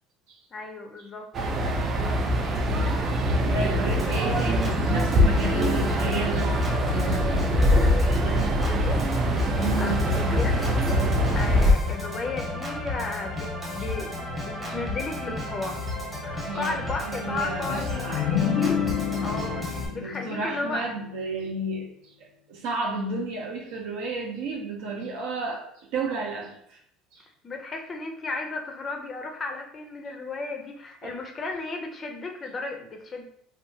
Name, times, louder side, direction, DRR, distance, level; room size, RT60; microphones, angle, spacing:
voice 1, 0.5-1.6 3.3-4.3 5.8-6.0 7.1-9.1 9.8-10.9 11.3-15.8 16.2-18.8 19.2-20.9 27.4-33.2, left 3 dB, 25° left, 3 dB, 0.4 m, -35 dB
sound 1, 1.3-11.7, equal, 35° right, 0.4 m, -23 dB
voice 2, 3.2-6.6 7.1-7.2 9.6-10.0 13.8-13.9 14.7-14.8 16.5-18.3 19.9-26.8 27.1-27.3 31.0-31.1, right 3 dB, 75° right, 0 dB, 0.7 m, -32 dB
Organ, 3.9-19.9, left 2 dB, 15° right, 0.8 m, -33 dB
sound 2, 17.6-21.3, left 8 dB, 85° left, 0.5 m, -29 dB
2.7 x 2.2 x 2.6 m, 0.68 s
cardioid pair, 130°, 0 cm